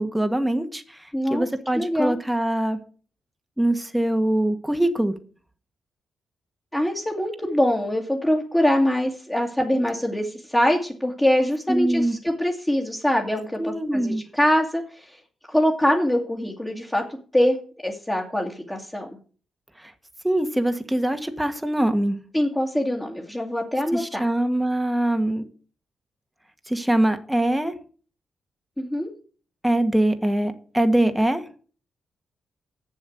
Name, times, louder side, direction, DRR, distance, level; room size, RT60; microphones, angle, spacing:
voice 1, 0.0-2.8 3.6-5.1 11.7-12.2 13.6-14.2 19.8-19.9 20.2-22.2 23.9-25.4 26.7-27.7 29.6-31.5, right 1 dB, 5° right, 1.4 m, -23 dB
voice 2, 1.1-1.4 1.8-2.2 6.7-15.2 15.5-17.0 17.3-17.6 17.8-19.1 22.3-24.2 28.8-29.1, left 1 dB, 10° left, 2.1 m, -23 dB
7.8 x 7.3 x 7.9 m
cardioid pair, 80°, 0 cm